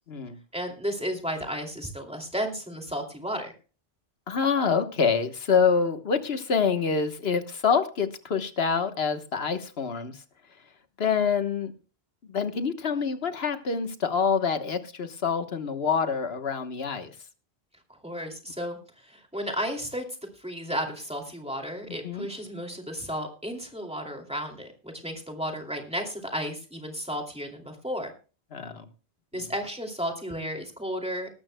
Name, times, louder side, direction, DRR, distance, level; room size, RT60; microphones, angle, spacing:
voice 1, 0.5-3.5 18.0-20.0 20.4-28.1 29.3-31.3, equal, 5° right, 2 dB, 2.5 m, -33 dB
voice 2, 4.3-10.2 11.0-11.7 12.3-17.1 22.0-22.3 28.5-28.8 29.4-29.5, left 6 dB, 70° left, 9 dB, 1.4 m, -26 dB
19.0 x 13.0 x 2.2 m, 0.35 s
omnidirectional pair, 1.1 m